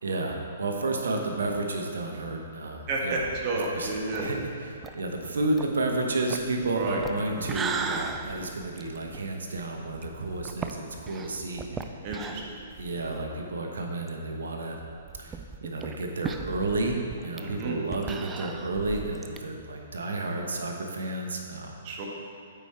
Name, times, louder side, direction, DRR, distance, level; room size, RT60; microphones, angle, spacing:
voice 1, 0.0-3.3 3.5-3.9 4.2-11.9 12.8-14.8 15.2-17.0 17.2-21.8, right 2 dB, 80° right, 2 dB, 1.0 m, -31 dB
voice 2, 2.9-4.3 6.7-7.0 12.0-12.5 17.4-17.8 21.8-22.1, right 2 dB, 40° right, -2 dB, 1.4 m, -31 dB
sound 1, 3.1-13.3 13.7-13.8 14.1-14.2 14.9-19.4, right 5 dB, 15° right, 0.4 m, -38 dB
8.2 x 4.8 x 4.4 m, 2.4 s
hypercardioid pair, 130°, 0 cm